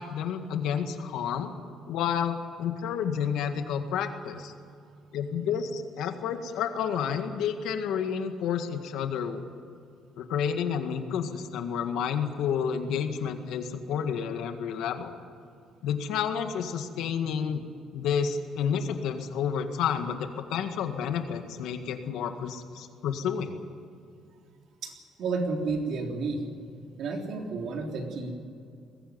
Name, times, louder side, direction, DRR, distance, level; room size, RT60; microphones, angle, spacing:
voice 1, 0.0-1.5 1.9-4.5 5.1-9.4 10.2-15.1 15.8-17.6 17.9-23.6, left 7 dB, 85° left, 6 dB, 1.9 m, -30 dB
voice 2, 24.8-26.5 27.0-28.3, right 3 dB, 65° right, 2 dB, 3.7 m, -31 dB
21.5 x 15.5 x 9.6 m, 2.4 s
cardioid pair, 120°, 0 cm